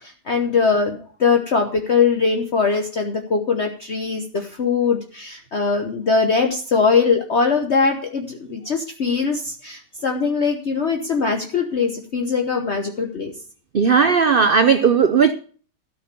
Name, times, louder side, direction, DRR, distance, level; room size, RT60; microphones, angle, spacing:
voice 1, 0.0-13.3, left 5 dB, 45° left, 1.2 m, -21 dB
voice 2, 13.7-15.3, right 6 dB, 65° right, 0.5 m, -16 dB
13.0 x 5.9 x 6.8 m
omnidirectional pair, 1.7 m